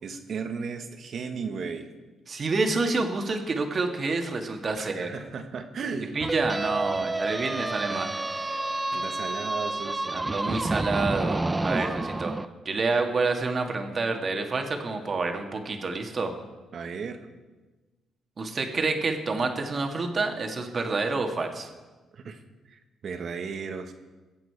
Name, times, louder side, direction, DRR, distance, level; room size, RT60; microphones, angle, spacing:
voice 1, 0.0-1.9 4.8-6.2 7.9-8.2 8.9-10.2 16.7-17.3 22.1-22.4 22.7-23.9, right 5 dB, 55° right, 7 dB, 1.4 m, -35 dB
voice 2, 2.3-5.1 6.2-8.1 10.1-12.3 12.7-16.3 18.4-21.7, right 3 dB, 40° right, 4 dB, 1.8 m, -28 dB
sound 1, 6.2-12.5, right 2 dB, 20° right, 0.5 m, -29 dB
21.5 x 7.9 x 4.7 m, 1.2 s
cardioid pair, 90°, 0 cm